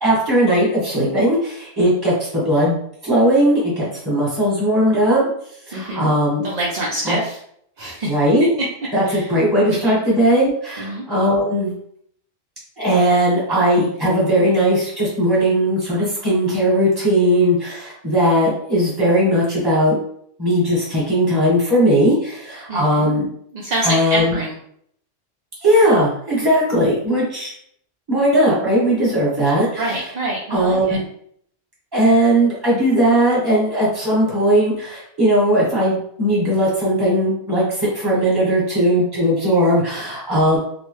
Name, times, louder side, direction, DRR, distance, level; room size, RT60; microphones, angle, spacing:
voice 1, 0.0-5.3 5.7-6.5 7.0-7.2 8.0-8.5 8.9-11.7 12.8-20.0 20.4-23.2 23.8-24.4 25.6-27.5 28.1-29.9 30.5-31.0 31.9-40.6, equal, 20° right, -7 dB, 1.3 m, -18 dB
voice 2, 5.7-6.1 6.4-7.4 7.8-8.2 9.1-9.3 9.8-10.0 10.8-11.0 22.7-23.1 23.5-24.5 26.3-26.5 29.8-31.0, right 1 dB, 50° right, -5 dB, 0.5 m, -26 dB
2.9 x 2.1 x 3.1 m, 0.67 s
omnidirectional pair, 1.3 m